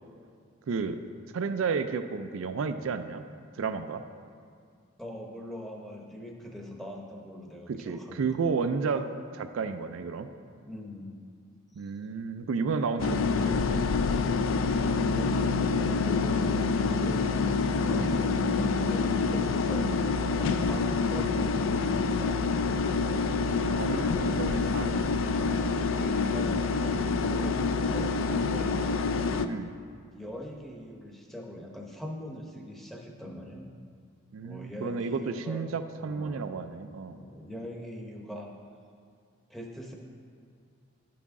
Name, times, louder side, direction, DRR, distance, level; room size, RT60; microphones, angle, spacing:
voice 1, 0.7-1.0 1.3-3.2 3.5-4.0 7.7-9.1 9.3-10.3 11.7-13.8 17.9-18.2 21.2-21.4 23.6-24.9 29.5-29.8 34.3-37.2, right 5 dB, 80° right, 9 dB, 0.4 m, -32 dB
voice 2, 5.0-8.3 9.5-9.7 10.5-11.2 11.7-11.9 15.1-22.8 24.8-28.7 30.1-33.7 34.4-35.6 36.0-36.6 37.1-38.5 39.5-39.9, left 1 dB, ahead, 0 dB, 0.7 m, -42 dB
sound 1, 13.0-29.5, left 4 dB, 70° left, 0.3 m, -27 dB
11.0 x 5.9 x 3.6 m, 2.2 s
head